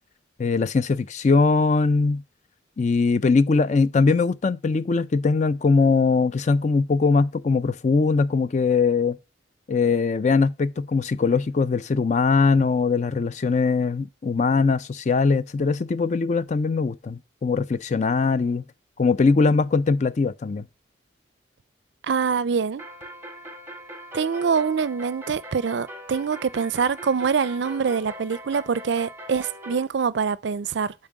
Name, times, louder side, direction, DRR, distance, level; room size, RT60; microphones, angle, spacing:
voice 1, 0.4-2.2 2.8-9.2 9.7-18.6 19.0-20.7, left 4 dB, 40° left, 0.4 m, -21 dB
voice 2, 22.0-22.8 24.1-30.9, right 6 dB, 65° right, 0.4 m, -24 dB
sound 1, 22.8-29.8, equal, 10° right, 1.1 m, -41 dB
7.3 x 4.4 x 4.7 m
head